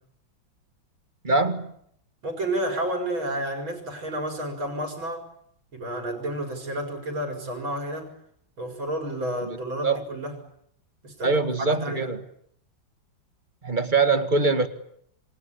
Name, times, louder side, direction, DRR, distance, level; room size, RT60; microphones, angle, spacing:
voice 1, 1.2-1.7 9.5-9.6 9.8-10.0 11.2-12.2 13.6-14.7, right 3 dB, 25° right, 9 dB, 2.0 m, -23 dB
voice 2, 2.2-5.3 5.7-8.1 8.6-10.3 11.0-12.1, right 1 dB, 75° right, 3 dB, 5.5 m, -31 dB
27.5 x 25.0 x 8.6 m, 0.70 s
omnidirectional pair, 2.2 m